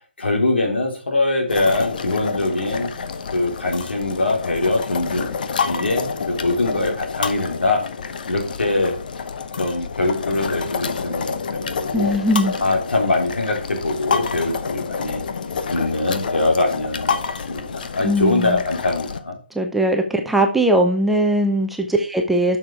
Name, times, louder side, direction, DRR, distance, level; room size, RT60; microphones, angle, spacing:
voice 1, 0.2-2.9 3.3-5.3 5.7-7.9 8.3-9.0 9.6-12.1 12.6-15.2 15.7-17.2 17.5-19.4, left 2 dB, 75° left, 2 dB, 3.0 m, -22 dB
sound 1, 1.5-19.2, left 5 dB, 50° left, 0.9 m, -28 dB
voice 2, 11.9-12.5 18.0-18.6 19.5-22.6, right 1 dB, 5° right, 3 dB, 0.7 m, -19 dB
6.7 x 6.4 x 4.6 m, 0.38 s
figure-of-eight pair, 145°, 6 cm